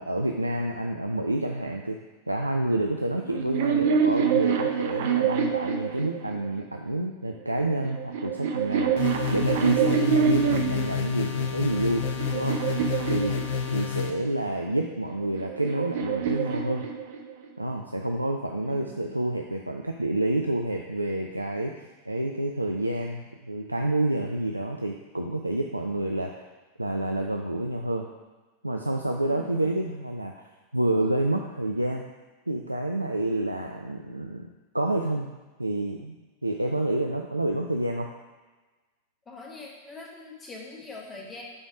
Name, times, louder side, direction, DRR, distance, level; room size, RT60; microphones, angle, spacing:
voice 1, 0.0-2.0 2.3-8.9 9.3-12.1 12.3-12.6 13.1-13.4 13.7-16.8 17.6-21.7 22.1-26.4 26.8-28.1 28.6-30.3 30.7-32.0 32.5-34.5 34.7-35.3 35.6-38.1, right 1 dB, 85° right, 2 dB, 0.4 m, -28 dB
sound 1, 3.2-6.6 7.5-10.9 11.6-14.0 15.1-17.5, right 7 dB, 55° right, 0.7 m, -26 dB
sound 2, 9.0-14.1, left 7 dB, 55° left, 0.7 m, -29 dB
voice 2, 18.6-19.2 29.2-29.7 39.2-41.4, left 3 dB, 20° left, -1 dB, 1.6 m, -43 dB
8.6 x 4.1 x 4.7 m, 1.2 s
figure-of-eight pair, 90°, 0 cm